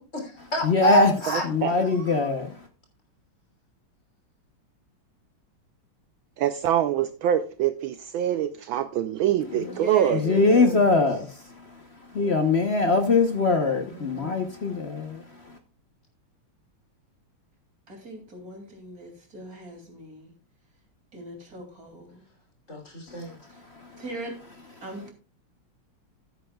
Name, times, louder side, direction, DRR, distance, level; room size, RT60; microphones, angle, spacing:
voice 1, 0.0-1.4 1.8-2.3 10.4-10.9 13.9-14.4 22.7-23.4, left 2 dB, 35° left, 3.5 m, -33 dB
voice 2, 0.6-1.1 1.4-2.5 10.1-11.3 12.2-15.2, left 3 dB, 55° left, 0.7 m, -21 dB
voice 3, 1.3-1.8 6.4-10.4, right 11 dB, 75° right, 1.4 m, -25 dB
voice 4, 9.6-10.3 17.9-20.3 21.1-22.2 24.0-24.4 24.8-25.1, right 2 dB, 40° right, 3.2 m, -39 dB
15.0 x 9.2 x 2.3 m
omnidirectional pair, 2.4 m